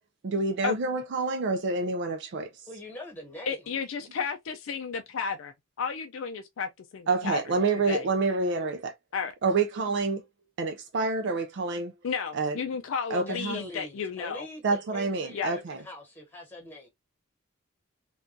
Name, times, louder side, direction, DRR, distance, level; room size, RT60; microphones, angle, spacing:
voice 1, 0.2-2.5 7.1-8.9 9.4-10.2 10.6-11.9 12.3-12.6 13.1-13.6 14.6-15.8, right 3 dB, 60° right, 0.4 m, -28 dB
voice 2, 2.7-3.7 13.3-16.9, left 1 dB, 10° left, 1.3 m, -43 dB
voice 3, 3.5-7.4 7.9-8.1 9.1-9.3 12.0-14.5 15.3-15.5, left 6 dB, 65° left, 0.4 m, -33 dB
3.7 x 2.3 x 2.5 m
head